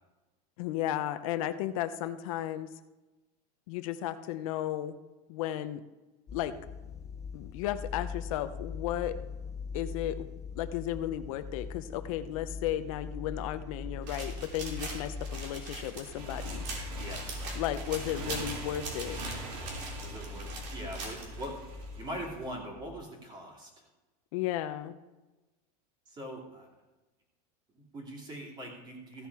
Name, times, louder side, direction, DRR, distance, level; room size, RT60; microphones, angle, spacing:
voice 1, 0.6-2.7 3.7-4.9 5.3-5.8 6.3-6.5 7.3-9.2 9.7-10.3 10.6-16.6 17.6-19.2 24.3-25.0, left 12 dB, 60° left, 12 dB, 0.7 m, -34 dB
sound 1, 6.3-23.0, left 4 dB, 15° left, 0.4 m, -42 dB
sound 2, 14.0-21.5, right 3 dB, 90° right, 3.5 m, -42 dB
Motorcycle, 16.2-22.5, right 2 dB, 60° right, 2.9 m, -44 dB
voice 2, 17.0-18.0 20.0-23.9 26.1-26.7 27.7-29.3, right 1 dB, 20° right, -1 dB, 2.8 m, -42 dB
15.5 x 7.2 x 4.8 m, 1.1 s
supercardioid pair, 160°, 20 cm